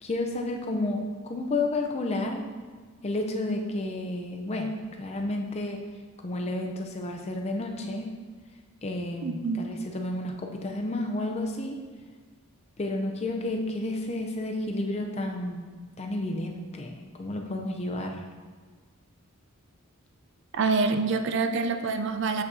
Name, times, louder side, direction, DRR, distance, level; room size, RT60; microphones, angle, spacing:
voice 1, 0.0-2.5 3.0-5.8 6.2-8.1 8.8-11.8 12.8-15.7 16.0-18.3, left 2 dB, 30° left, 3 dB, 0.5 m, -31 dB
voice 2, 9.2-9.7 20.5-22.4, right 4 dB, 55° right, 7 dB, 0.4 m, -26 dB
7.6 x 6.0 x 2.6 m, 1.5 s
head